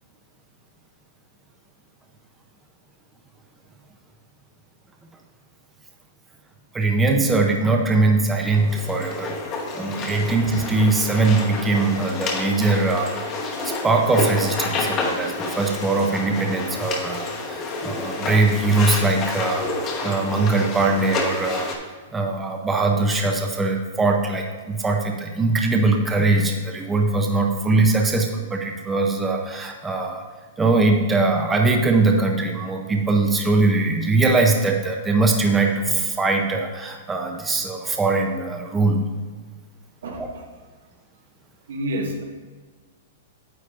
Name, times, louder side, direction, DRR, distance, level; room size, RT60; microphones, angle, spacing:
voice 1, 6.7-9.3 9.7-21.7 22.1-30.2 30.6-39.0 40.2-40.3, right 3 dB, 10° right, 2 dB, 0.5 m, -21 dB
sound 1, 8.3-21.8, left 3 dB, 25° left, 1.0 m, -29 dB
voice 2, 40.0-40.4 41.7-42.2, equal, 85° right, 1 dB, 1.6 m, -29 dB
9.2 x 8.3 x 2.5 m, 1.4 s
hypercardioid pair, 165°, 0 cm